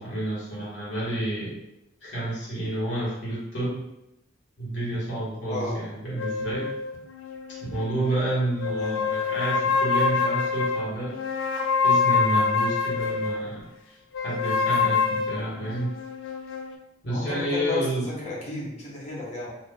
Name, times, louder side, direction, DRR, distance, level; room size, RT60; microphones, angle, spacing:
voice 1, 0.0-1.6 2.0-3.9 4.6-6.7 7.7-11.2 11.8-13.6 14.2-15.9 17.0-18.1, right 1 dB, 65° left, -7 dB, 1.5 m, -29 dB
voice 2, 5.5-5.8 8.7-9.0 17.0-19.5, left 2 dB, 35° left, -5 dB, 0.9 m, -32 dB
sound 1, 6.2-8.2 8.6-13.5 14.1-16.7, left 5 dB, 90° left, 0.4 m, -26 dB
2.6 x 2.4 x 3.7 m, 0.88 s
head